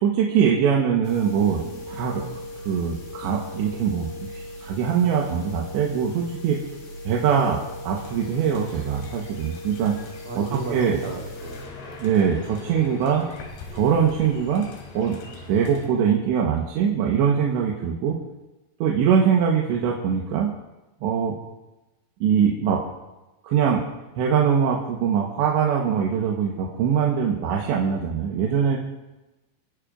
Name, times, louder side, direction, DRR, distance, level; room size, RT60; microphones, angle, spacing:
voice 1, 0.0-2.3 2.6-6.6 7.0-7.6 7.8-10.0 10.3-11.0 12.0-13.3 13.7-14.7 14.9-15.2 15.5-18.2 18.8-20.5 21.0-21.3 22.2-22.8 23.4-23.8 24.2-28.8, right 7 dB, 80° right, -1 dB, 3.4 m, -22 dB
sound 1, 1.0-11.6, left 1 dB, 35° left, 3.5 m, -38 dB
sound 2, 7.9-15.9, left 3 dB, 80° left, 4.4 m, -42 dB
voice 2, 10.2-11.7, right 3 dB, 65° right, -1 dB, 1.8 m, -34 dB
29.0 x 10.5 x 2.5 m, 1.1 s
omnidirectional pair, 5.1 m